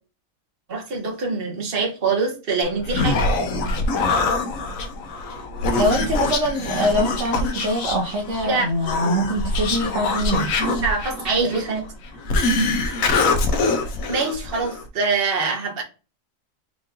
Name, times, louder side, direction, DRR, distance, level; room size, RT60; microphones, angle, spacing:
voice 1, 0.7-3.2 8.4-8.7 10.8-11.9 14.1-15.8, right 4 dB, 45° right, 1.3 m, -24 dB
Human voice, 2.6-14.9, left 3 dB, 75° left, 1.2 m, -24 dB
voice 2, 5.8-10.5, equal, 65° right, 1.1 m, -23 dB
4.5 x 4.0 x 2.6 m
omnidirectional pair, 1.4 m